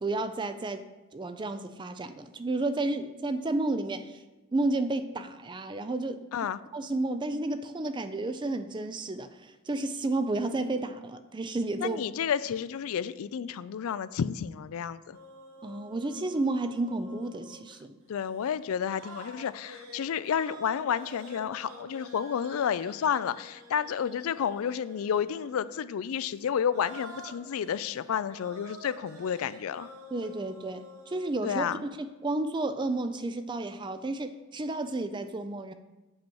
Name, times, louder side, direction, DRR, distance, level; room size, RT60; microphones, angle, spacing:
voice 1, 0.0-4.2 4.5-6.2 6.7-12.0 15.6-18.0 30.1-35.7, right 2 dB, 20° right, 10 dB, 0.4 m, -32 dB
voice 2, 11.8-15.2 18.1-29.9 31.4-31.8, left 8 dB, 70° left, 16 dB, 0.3 m, -31 dB
sound 1, 15.1-17.8 18.1-18.3 18.7-25.8 26.3-26.4 26.6-31.3, equal, 75° right, 1.3 m, -49 dB
7.8 x 4.5 x 7.0 m, 1.1 s
head